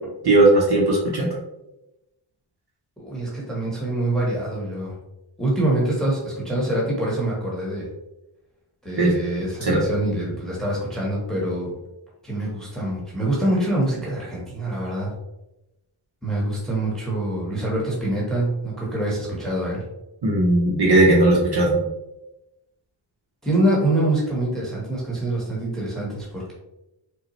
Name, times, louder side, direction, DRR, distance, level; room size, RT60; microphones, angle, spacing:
voice 1, 0.2-1.3 9.0-9.1 9.6-9.8 20.2-21.8, right 2 dB, 50° right, -3 dB, 0.8 m, -17 dB
voice 2, 3.0-4.9 5.4-7.9 8.8-11.7 12.2-15.1 16.2-19.8 23.4-26.5, right 1 dB, ahead, -5 dB, 1.1 m, -25 dB
5.4 x 2.1 x 3.0 m, 0.94 s
wide cardioid pair, 115°, 49 cm